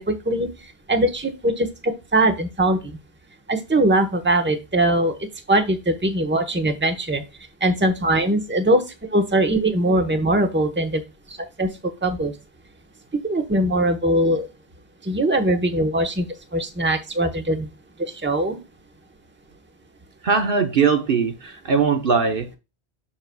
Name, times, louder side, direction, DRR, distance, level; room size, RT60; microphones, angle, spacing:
voice 1, 0.1-0.5 0.9-2.8 3.5-5.2 5.5-7.2 7.6-8.8 9.1-11.0 11.3-11.7 12.0-12.3 13.2-14.5 15.0-16.3 16.5-17.7 18.2-18.6, right 1 dB, 10° right, 0.9 m, -21 dB
voice 2, 20.2-22.6, right 5 dB, 60° right, 1.0 m, -20 dB
7.2 x 6.6 x 2.3 m
omnidirectional pair, 1.1 m